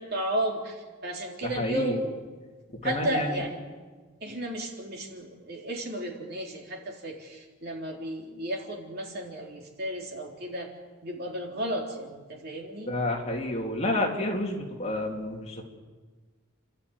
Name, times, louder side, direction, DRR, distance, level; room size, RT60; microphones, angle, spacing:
voice 1, 0.0-2.2 2.8-3.6 4.2-10.7 11.0-13.0, right 1 dB, 50° right, 0 dB, 3.7 m, -33 dB
voice 2, 1.4-2.0 2.7-3.4 12.9-15.6, left 1 dB, 30° left, 0 dB, 2.9 m, -30 dB
30.0 x 13.0 x 9.6 m, 1.4 s
head